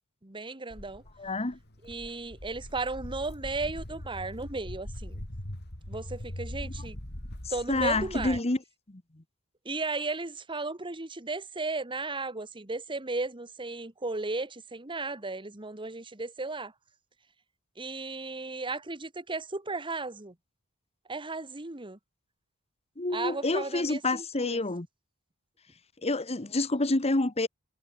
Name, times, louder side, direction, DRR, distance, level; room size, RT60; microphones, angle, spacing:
voice 1, 0.2-1.0 1.8-5.2 5.9-7.0 7.5-8.4 9.7-16.7 17.8-20.3 21.1-22.0 23.1-24.6, right 3 dB, 25° right, 1.7 m, -35 dB
Walk footsteps, 0.7-8.4, left 1 dB, 50° left, 3.5 m, -41 dB
voice 2, 1.2-1.6 7.7-8.6 8.9-9.0 23.0-24.9 26.0-27.5, left 2 dB, 30° left, 1.3 m, -28 dB
head